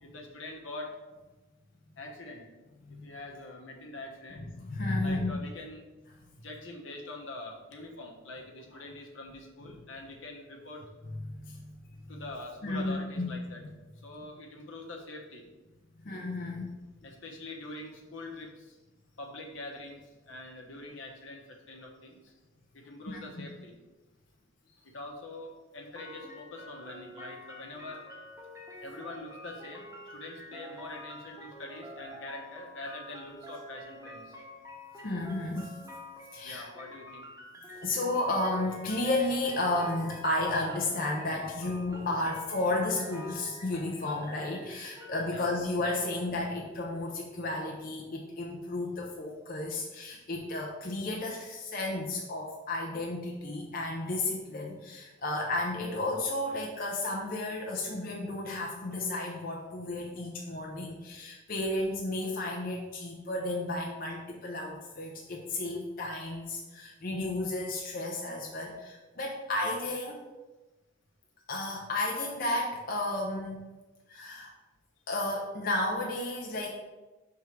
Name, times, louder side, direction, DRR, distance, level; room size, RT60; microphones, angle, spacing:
voice 1, 0.0-0.9 2.0-2.4 2.9-4.5 5.0-5.9 6.4-10.8 12.1-13.6 14.0-15.4 17.0-18.8 19.2-20.0 20.2-22.3 22.7-23.7 24.8-28.0 28.8-34.4 36.4-37.3 45.3-45.5, left 2 dB, 75° left, 1 dB, 1.0 m, -44 dB
voice 2, 4.4-5.3 11.2-11.7 12.6-13.3 15.9-16.6 23.1-23.2 35.0-35.8 36.3-36.7 37.7-70.3 71.5-73.6 74.1-74.5 75.1-76.7, left 2 dB, 45° left, -1 dB, 0.6 m, -33 dB
sound 1, 25.9-45.2, left 1 dB, 15° right, 0.9 m, -47 dB
5.9 x 3.6 x 4.5 m, 1.2 s
head